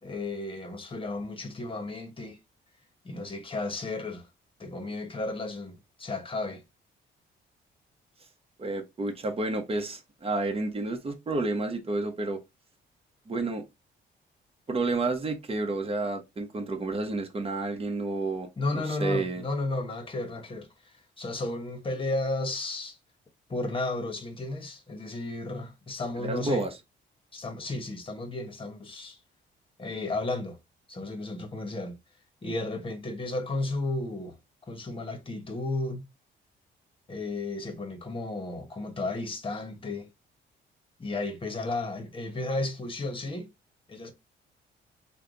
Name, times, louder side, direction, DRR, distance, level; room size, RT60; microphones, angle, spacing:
voice 1, 0.0-2.4 3.0-4.3 4.6-6.6 18.6-23.0 23.5-26.7 27.3-29.2 29.8-30.6 30.9-32.0 32.4-34.4 34.7-36.1 37.1-40.1 41.0-43.5 43.9-44.1, left 2 dB, 25° left, 1.1 m, -33 dB
voice 2, 8.6-12.4 13.3-13.6 14.7-18.5 18.7-19.4 26.2-26.7, right 2 dB, 30° right, 1.0 m, -30 dB
3.3 x 2.3 x 3.8 m
cardioid pair, 90°, 20 cm